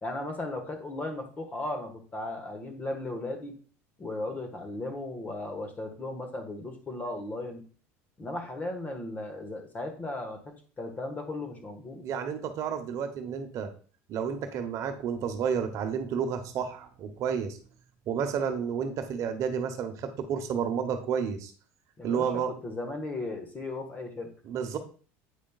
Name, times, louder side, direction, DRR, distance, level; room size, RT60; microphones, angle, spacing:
voice 1, 0.0-3.5 4.0-7.6 8.2-12.0 22.0-22.2 22.6-24.3, left 2 dB, 25° left, 5 dB, 1.4 m, -36 dB
voice 2, 12.0-13.7 14.1-17.6 18.1-21.5 22.0-22.5 24.4-24.8, right 7 dB, 50° right, 6 dB, 1.0 m, -31 dB
8.4 x 5.1 x 2.4 m, 0.41 s
supercardioid pair, 120°, 7 cm